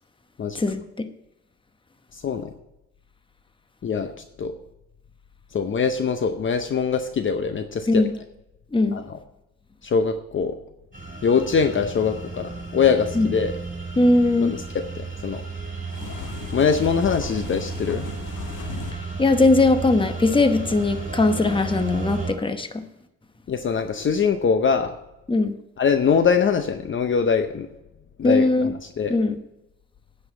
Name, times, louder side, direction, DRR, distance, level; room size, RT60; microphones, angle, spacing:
voice 1, 0.5-1.1 7.9-8.1 8.7-9.0 13.1-13.3 14.0-14.5 19.2-22.8 25.3-25.5 28.2-28.7 29.1-29.4, left 2 dB, 15° left, 9 dB, 1.0 m, -20 dB
voice 2, 2.1-2.5 3.8-4.1 4.4-4.5 5.5-8.0 8.9-9.2 9.8-10.6 11.2-13.5 14.4-14.6 14.9-15.4 16.5-18.1 23.5-24.9 25.8-27.7 28.2-29.2, left 6 dB, 40° left, 8 dB, 0.8 m, -23 dB
sound 1, 10.9-22.3, right 4 dB, 25° right, 4.6 m, -33 dB
sound 2, 15.9-18.9, left 6 dB, 90° left, 1.5 m, -36 dB
9.9 x 5.6 x 8.0 m, 0.90 s
cardioid pair, 90°, 30 cm